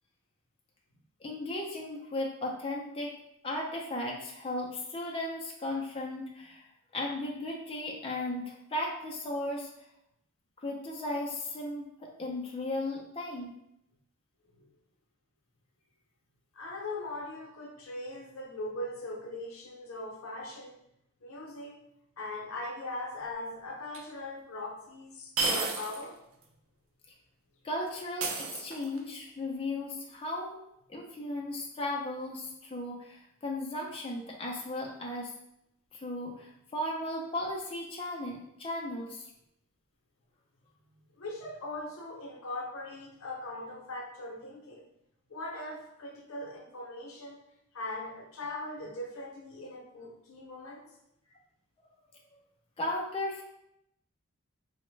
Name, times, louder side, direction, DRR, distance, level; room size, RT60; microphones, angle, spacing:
voice 1, 1.2-3.1 3.4-6.6 6.9-9.7 10.6-13.6 27.6-30.6 30.9-35.3 35.9-39.3 52.8-53.4, left 1 dB, 25° left, -1 dB, 0.4 m, -36 dB
voice 2, 16.5-20.8 21.2-21.8 22.2-26.2 41.2-44.8 45.3-47.4 47.7-50.9, left 2 dB, 90° left, 1 dB, 0.6 m, -40 dB
sound 1, 23.9-24.0 25.4-26.1 26.4-26.5 28.2-29.1, right 3 dB, 90° right, 0.5 m, -32 dB
3.2 x 2.1 x 3.1 m, 0.80 s
head